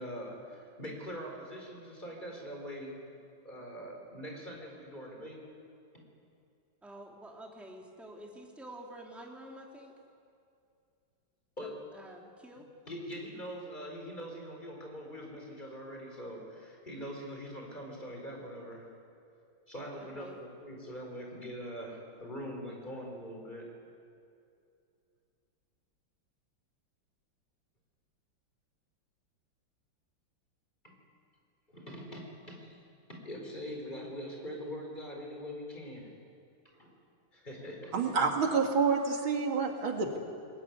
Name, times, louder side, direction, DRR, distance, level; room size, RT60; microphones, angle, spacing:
voice 1, 0.0-3.0 3.4-5.4 5.9-6.0 11.6-11.7 12.9-18.9 19.7-23.7 30.8-31.0 31.7-32.7 33.1-36.1 36.7-36.9 37.3-38.0, equal, 20° left, 1 dB, 4.5 m, -43 dB
voice 2, 6.8-9.9 11.6-12.7 20.0-20.4, right 1 dB, ahead, 0 dB, 2.3 m, -49 dB
voice 3, 37.9-40.2, right 5 dB, 85° right, 3 dB, 2.9 m, -28 dB
22.5 x 20.0 x 9.5 m, 2.5 s
omnidirectional pair, 2.2 m